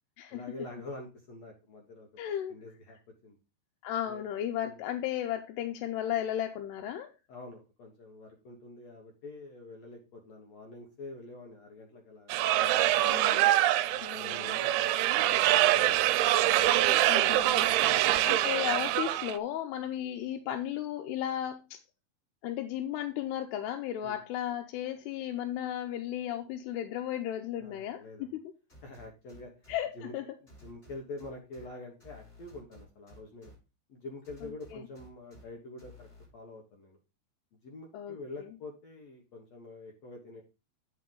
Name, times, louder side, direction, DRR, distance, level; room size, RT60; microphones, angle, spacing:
voice 1, 0.3-2.1 2.5-3.0 3.2-3.4 4.1-4.2 4.6-4.8 7.3-13.2 13.9-16.0 17.5-18.5 18.9-19.0 24.0-24.2 27.6-28.4 28.8-29.7 29.9-30.1 30.4-33.5 33.9-36.1 36.3-37.0 37.6-40.4, left 2 dB, 65° left, 1 dB, 1.8 m, -46 dB
voice 2, 2.2-2.6 3.8-7.1 13.0-13.5 14.0-14.6 17.1-17.7 18.2-21.8 22.4-28.4 29.7-30.3 34.7-34.9 37.9-38.2, left 11 dB, 85° left, 4 dB, 2.7 m, -35 dB
sound 1, 12.3-19.4, right 14 dB, 80° right, 2.4 m, -25 dB
sound 2, 28.7-29.8 30.5-31.7 32.0-33.5 34.2-35.4 35.8-36.3, equal, 15° left, 5.3 m, -53 dB
9.4 x 5.6 x 3.8 m, 0.29 s
omnidirectional pair, 4.7 m